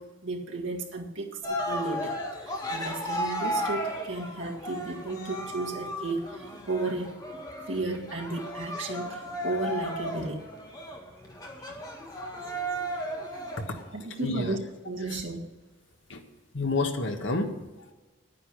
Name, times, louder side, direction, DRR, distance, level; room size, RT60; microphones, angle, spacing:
voice 1, 0.0-7.2 7.7-10.5 11.6-11.8 13.9-14.6 14.9-15.5, right 3 dB, 80° right, 1 dB, 1.8 m, -34 dB
Cheering, 1.4-13.8, equal, 20° left, 1.7 m, -35 dB
voice 2, 13.6-13.9 14.2-14.6 15.1-15.2 16.1-16.2 16.5-17.5, left 2 dB, 80° left, 5 dB, 1.5 m, -29 dB
10.5 x 9.5 x 6.4 m, 1.2 s
head